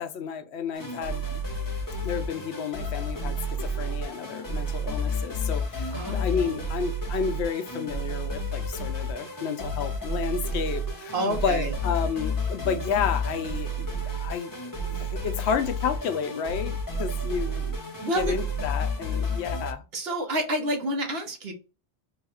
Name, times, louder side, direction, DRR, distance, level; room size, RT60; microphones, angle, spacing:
voice 1, 0.0-1.4 2.0-14.5 14.8-17.8 18.1-19.8, left 7 dB, 85° left, 0.9 m, -31 dB
sound 1, 0.7-19.7, equal, 20° left, 0.7 m, -31 dB
voice 2, 5.9-6.5 11.1-11.7 18.0-18.4 19.9-21.5, right 1 dB, 65° right, 1.2 m, -29 dB
3.3 x 2.3 x 4.2 m
omnidirectional pair, 1.1 m